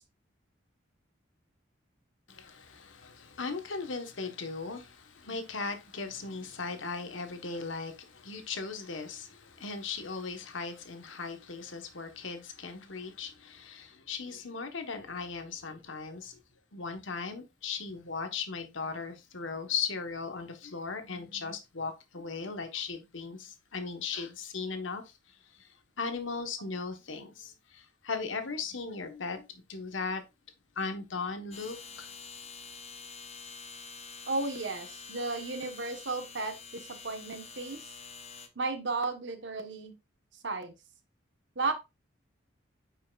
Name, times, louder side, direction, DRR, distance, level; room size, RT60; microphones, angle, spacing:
voice 1, 2.3-16.4 16.7-25.7 26.0-30.2 30.7-32.1, left 4 dB, 80° left, 1.3 m, -38 dB
sound 1, 31.5-38.5, left 5 dB, 30° left, 0.9 m, -47 dB
voice 2, 34.3-37.8 38.5-40.0 40.4-40.7 41.5-41.7, right 3 dB, 65° right, 1.3 m, -34 dB
9.1 x 5.7 x 2.4 m
head